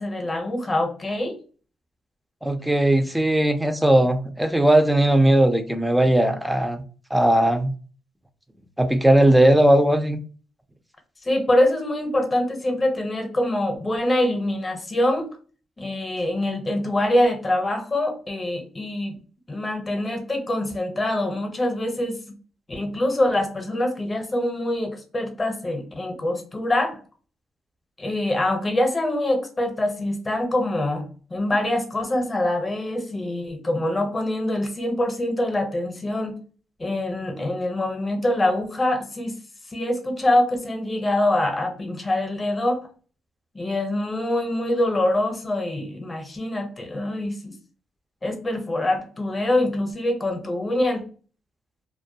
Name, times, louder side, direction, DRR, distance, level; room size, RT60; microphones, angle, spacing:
voice 1, 0.0-1.4 11.2-15.3 15.8-19.1 19.5-22.2 22.7-27.0 28.0-36.3 36.8-39.3 39.7-42.8 43.5-47.5 48.2-51.0, left 1 dB, 25° left, 0.7 m, -24 dB
voice 2, 2.4-6.8 7.1-7.7 8.8-10.2, right 1 dB, 5° right, 0.4 m, -18 dB
2.2 x 2.1 x 2.6 m
cardioid pair, 90°, 0 cm